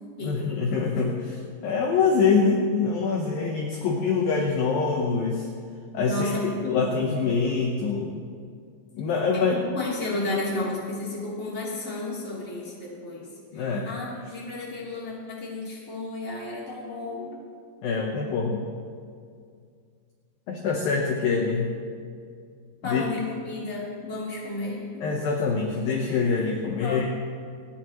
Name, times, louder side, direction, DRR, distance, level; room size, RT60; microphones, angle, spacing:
voice 1, 0.2-5.5 5.9-8.2 8.9-9.5 13.5-13.9 17.8-18.7 20.5-21.8 22.8-23.0 25.0-27.1, left 5 dB, 75° left, 1 dB, 2.2 m, -25 dB
voice 2, 6.0-6.9 9.3-13.2 13.5-17.3 22.8-24.8 26.1-26.3 26.8-27.1, left 2 dB, 15° left, -6 dB, 2.6 m, -32 dB
28.0 x 11.0 x 3.1 m, 2.2 s
omnidirectional pair, 5.4 m